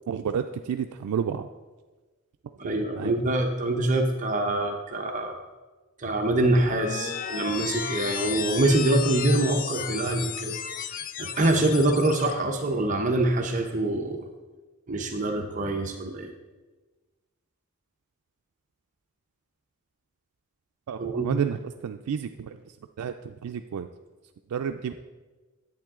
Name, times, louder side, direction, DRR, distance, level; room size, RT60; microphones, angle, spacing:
voice 1, 0.1-1.5 3.0-3.1 20.9-21.6 21.8-22.6 23.0-23.9 24.5-24.9, right 7 dB, 90° right, 6 dB, 0.3 m, -30 dB
voice 2, 2.6-5.4 6.0-10.6 11.2-14.3 14.9-16.3 21.0-21.3, right 2 dB, 35° right, 3 dB, 0.7 m, -25 dB
sound 1, 6.4-12.3, left 8 dB, 35° left, 0.4 m, -34 dB
10.5 x 8.1 x 3.6 m, 1.3 s
head